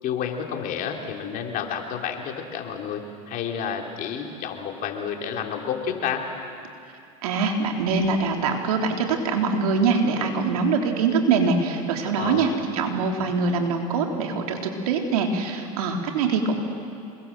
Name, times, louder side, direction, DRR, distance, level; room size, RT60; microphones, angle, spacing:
voice 1, 0.0-3.0 3.3-6.2 12.2-12.6, left 7 dB, 50° left, 2 dB, 3.8 m, -30 dB
voice 2, 7.2-16.5, right 4 dB, 80° right, 2 dB, 3.6 m, -23 dB
27.5 x 22.5 x 7.6 m, 2.5 s
supercardioid pair, 105°, 19 cm